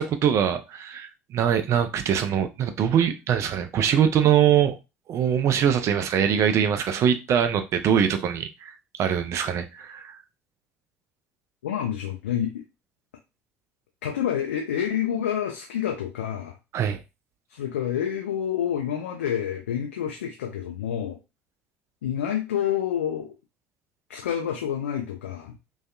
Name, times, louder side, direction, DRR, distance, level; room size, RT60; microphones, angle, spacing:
voice 1, 0.0-4.7 5.1-10.2 16.7-17.0, right 8 dB, 40° right, 0.4 m, -23 dB
voice 2, 11.6-12.6 14.0-16.6 17.5-21.2 22.0-23.3 24.1-25.5, left 9 dB, 70° left, 0.4 m, -28 dB
2.5 x 2.3 x 2.3 m
figure-of-eight pair, 60°, 7 cm